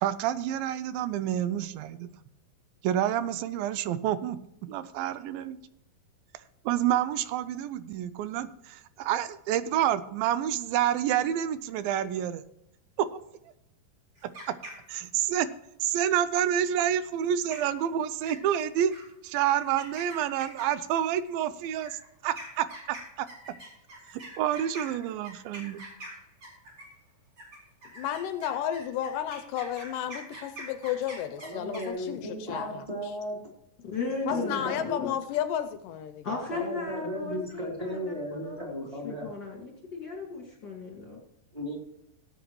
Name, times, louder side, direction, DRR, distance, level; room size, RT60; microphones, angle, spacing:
voice 1, 0.0-2.1 2.8-5.6 6.7-12.4 13.0-13.2 14.9-15.5 15.8-18.9 19.2-23.3 24.1-25.8, right 10 dB, 85° right, 14 dB, 2.4 m, -28 dB
sound 1, 14.2-15.2 17.1-17.2 17.5-17.8 18.3-18.6 18.9-19.0 19.5-20.9 21.8-27.0 27.4-31.9, right 1 dB, 35° right, 5.2 m, -44 dB
voice 2, 27.9-32.8 34.3-36.3, left 10 dB, 80° left, 9 dB, 2.1 m, -32 dB
voice 3, 31.4-33.4 34.3-35.1 36.5-39.3 41.5-41.8, equal, 10° right, -2 dB, 3.0 m, -35 dB
voice 4, 33.8-35.2 36.2-41.2, left 4 dB, 40° left, -1 dB, 2.1 m, -36 dB
18.0 x 8.1 x 3.1 m, 0.81 s
omnidirectional pair, 4.1 m